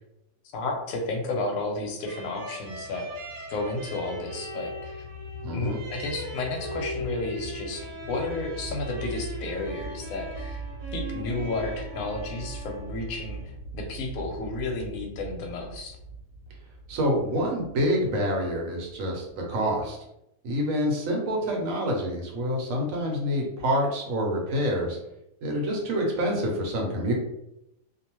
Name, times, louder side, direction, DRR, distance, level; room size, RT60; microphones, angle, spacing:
voice 1, 0.5-3.1 3.5-5.0 5.5-10.6 10.9-13.4 13.7-16.0, left 2 dB, 65° left, 1 dB, 1.0 m, -32 dB
sound 1, 2.1-13.5, right 1 dB, 80° right, 1.2 m, -40 dB
sound 2, 2.6-19.6, right 1 dB, 35° left, 0.6 m, -41 dB
voice 2, 5.4-5.8 16.9-20.0 20.4-25.0 25.4-27.1, equal, 65° right, -1 dB, 1.0 m, -27 dB
2.7 x 2.1 x 2.9 m, 0.84 s
omnidirectional pair, 1.7 m